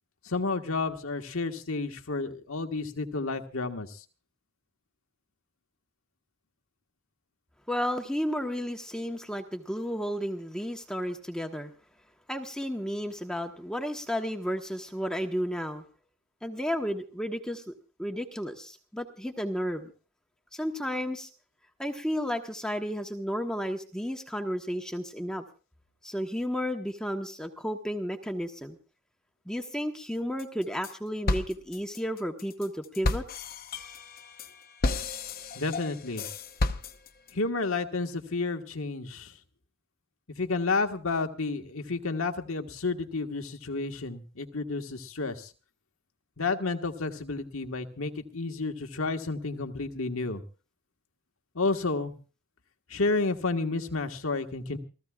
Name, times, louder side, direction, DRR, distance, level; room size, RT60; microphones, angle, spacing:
voice 1, 0.2-4.0 35.5-36.2 37.3-39.3 40.4-45.5 46.4-50.4 51.5-52.1 52.9-54.8, left 3 dB, 80° left, 5 dB, 1.6 m, -31 dB
voice 2, 7.7-11.7 12.3-15.8 16.4-17.7 18.0-19.9 20.5-21.3 21.8-25.4 26.0-28.8 29.5-33.2, equal, 5° left, 3 dB, 1.1 m, -32 dB
sound 1, 30.4-30.9 31.3-37.3, left 2 dB, 40° left, 0.9 m, -32 dB
29.0 x 14.5 x 2.4 m, 0.36 s
head